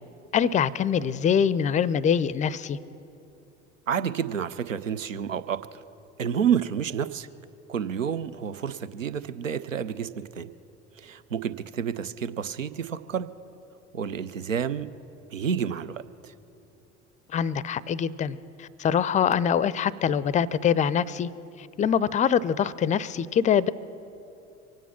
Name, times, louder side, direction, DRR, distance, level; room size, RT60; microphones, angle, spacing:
voice 1, 0.3-2.8 17.3-21.3 21.6-23.7, left 8 dB, 20° left, 19 dB, 0.4 m, -24 dB
voice 2, 3.9-5.8 6.2-7.3 7.7-10.5 11.0-13.3 13.9-14.9 15.3-16.3, right 8 dB, 85° right, 14 dB, 0.5 m, -29 dB
24.0 x 9.2 x 5.8 m, 2.7 s
figure-of-eight pair, 60°, 38 cm